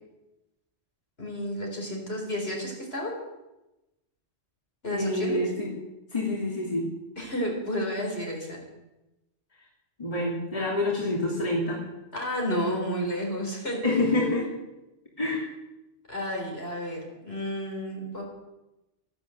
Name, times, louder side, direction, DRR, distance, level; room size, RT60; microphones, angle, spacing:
voice 1, 1.2-3.1 4.8-5.4 7.2-8.6 12.1-13.8 16.1-18.2, equal, 60° left, -1 dB, 4.5 m, -31 dB
voice 2, 4.9-5.7 6.1-6.9 10.0-11.8 13.8-14.5 15.2-15.4, left 2 dB, 30° left, -3 dB, 2.9 m, -27 dB
13.5 x 11.5 x 7.9 m, 1.0 s
omnidirectional pair, 1.2 m